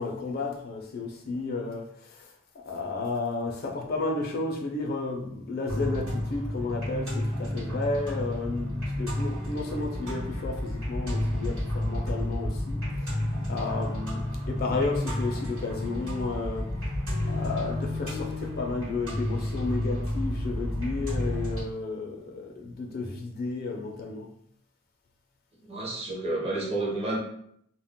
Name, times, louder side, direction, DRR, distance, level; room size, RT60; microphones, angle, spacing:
voice 1, 0.0-2.3 2.7-13.2 13.5-16.7 17.3-24.3, left 3 dB, 45° left, 1 dB, 0.4 m, -32 dB
sound 1, 5.7-21.6, left 1 dB, 85° right, 1.1 m, -31 dB
voice 2, 25.6-27.2, right 2 dB, 30° right, -3 dB, 0.6 m, -30 dB
2.2 x 2.0 x 3.5 m, 0.68 s
head